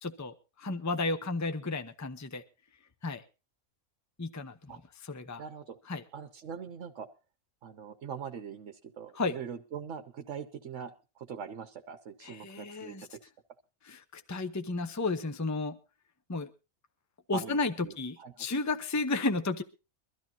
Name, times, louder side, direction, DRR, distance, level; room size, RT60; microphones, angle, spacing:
voice 1, 0.0-2.4 3.0-3.2 4.2-5.4 5.9-6.0 9.1-9.4 12.2-13.1 13.9-15.8 16.3-16.5 17.3-19.6, left 3 dB, 15° left, 9 dB, 0.8 m, -33 dB
voice 2, 5.4-5.8 6.1-7.1 7.6-13.0 17.3-18.3, right 7 dB, 60° right, 7 dB, 1.2 m, -42 dB
23.0 x 13.5 x 2.9 m, 0.31 s
omnidirectional pair, 1.5 m